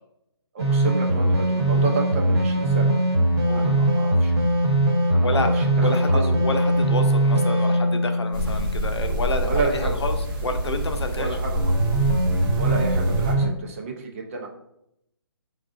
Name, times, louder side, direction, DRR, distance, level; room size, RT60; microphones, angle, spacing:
voice 1, 0.5-2.9 3.5-4.3 5.1-6.2 9.4-10.0 11.2-11.8 12.6-14.5, right 4 dB, 30° right, 1 dB, 0.6 m, -31 dB
sound 1, 0.6-9.2 11.5-13.5, right 1 dB, 85° right, 1.0 m, -21 dB
voice 2, 5.8-10.2 10.4-11.4, left 3 dB, 90° left, 6 dB, 0.6 m, -29 dB
sound 2, 8.3-13.3, right 1 dB, 50° right, 1.0 m, -27 dB
4.5 x 2.4 x 2.6 m, 0.78 s
hypercardioid pair, 155°, 14 cm